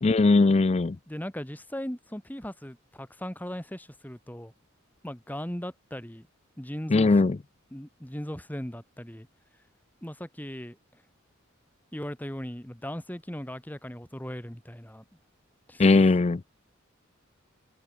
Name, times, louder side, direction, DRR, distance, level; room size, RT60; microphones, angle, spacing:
voice 1, 0.0-1.0 6.9-7.4 15.8-16.4, left 3 dB, 30° left, 0.4 m, -20 dB
voice 2, 1.1-4.5 5.0-6.3 6.6-7.2 7.7-9.3 10.0-10.8 11.9-15.0 15.7-15.9, equal, 10° left, 2.0 m, -38 dB
head